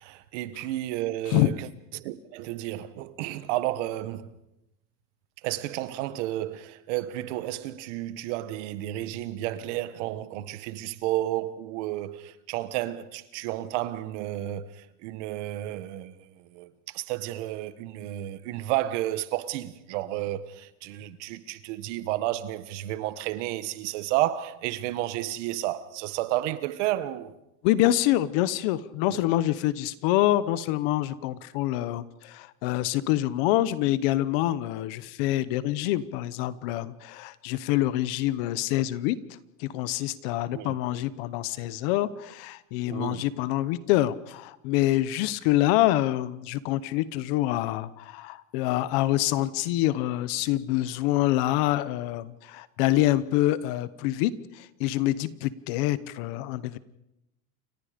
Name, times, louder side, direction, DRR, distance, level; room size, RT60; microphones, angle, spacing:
voice 1, 0.0-1.7 1.9-4.4 5.4-27.3 29.1-29.2 40.5-40.8 42.9-43.3, right 14 dB, 50° right, 1.4 m, -32 dB
voice 2, 27.6-39.2 39.6-56.8, left 15 dB, 40° left, 0.8 m, -26 dB
29.0 x 24.5 x 5.1 m
supercardioid pair, 175°, 45 cm